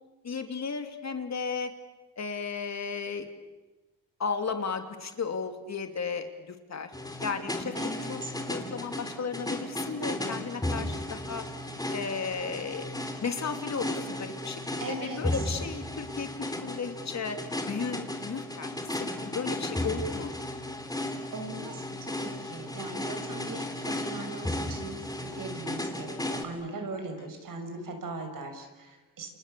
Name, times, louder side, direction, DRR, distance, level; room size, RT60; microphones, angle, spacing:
voice 1, 0.2-1.7 2.2-3.3 4.2-6.9 7.2-7.7 8.1-11.4 11.9-12.9 13.2-17.4 17.7-18.7 19.0-20.4, left 5 dB, 45° left, 6 dB, 2.8 m, -34 dB
sound 1, 6.9-26.4, left 1 dB, 10° left, 3.3 m, -35 dB
voice 2, 7.8-8.3 14.8-15.4 21.3-29.3, right 2 dB, 60° right, 5 dB, 6.5 m, -39 dB
29.0 x 29.0 x 6.9 m, 1.2 s
cardioid pair, 100°, 38 cm